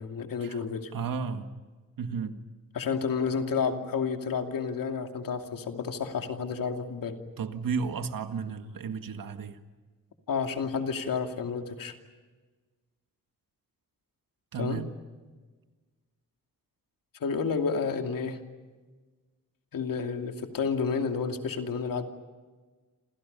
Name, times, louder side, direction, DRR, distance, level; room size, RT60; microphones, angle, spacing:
voice 1, 0.0-0.9 2.7-7.2 10.3-11.9 14.6-14.8 17.2-18.4 19.7-22.0, left 5 dB, 90° left, 4 dB, 2.7 m, -30 dB
voice 2, 0.9-1.5 2.0-2.3 7.4-9.6 14.5-14.9, right 5 dB, 85° right, 7 dB, 1.9 m, -33 dB
29.0 x 27.5 x 5.5 m, 1.3 s
wide cardioid pair, 135°, 33 cm